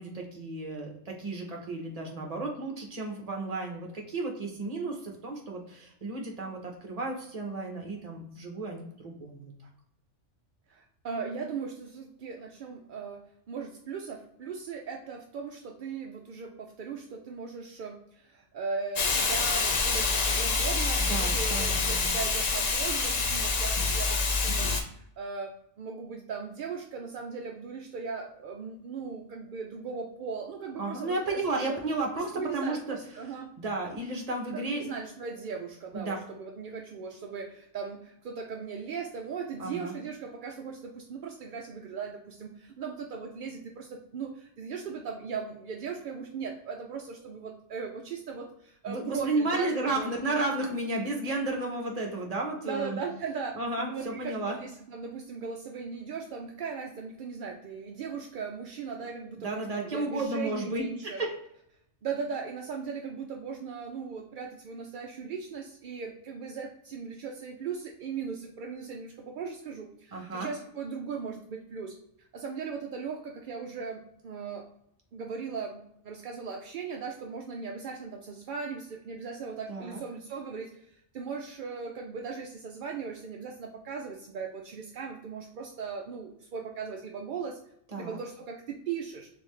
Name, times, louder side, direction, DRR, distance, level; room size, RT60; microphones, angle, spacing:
voice 1, 0.0-9.5 21.0-22.1 30.8-33.0 33.6-34.9 35.9-36.2 39.6-39.9 48.9-53.0 53.5-54.6 59.4-61.3 70.1-70.5 79.7-80.0 87.9-88.2, right 2 dB, 35° right, 1 dB, 0.9 m, -33 dB
voice 2, 10.7-13.2 13.5-31.8 32.2-33.5 34.5-50.1 52.7-53.5 53.9-61.2 62.0-71.9 72.3-74.7 75.1-87.6 88.0-89.3, right 5 dB, 60° right, 2 dB, 0.5 m, -38 dB
Hiss, 19.0-24.8, left 4 dB, 50° left, 0.5 m, -27 dB
3.8 x 3.4 x 3.1 m, 0.75 s
omnidirectional pair, 1.3 m